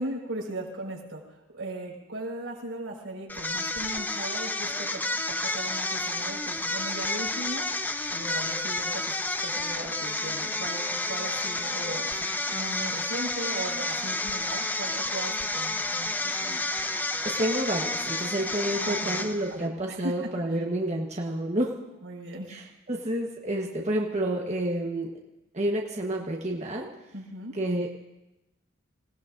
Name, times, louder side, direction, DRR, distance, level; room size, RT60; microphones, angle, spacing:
voice 1, 0.0-9.1 9.4-16.6 18.7-19.2 19.5-20.6 22.0-22.5 27.1-27.5, right 1 dB, 90° right, -3 dB, 5.0 m, -38 dB
sound 1, 3.3-19.6, left 2 dB, 10° left, 0.5 m, -30 dB
voice 2, 17.2-21.7 22.5-22.6 22.9-25.1 25.5-26.9 27.5-27.9, right 1 dB, 35° right, 0 dB, 1.2 m, -29 dB
27.0 x 18.0 x 2.6 m, 0.96 s
head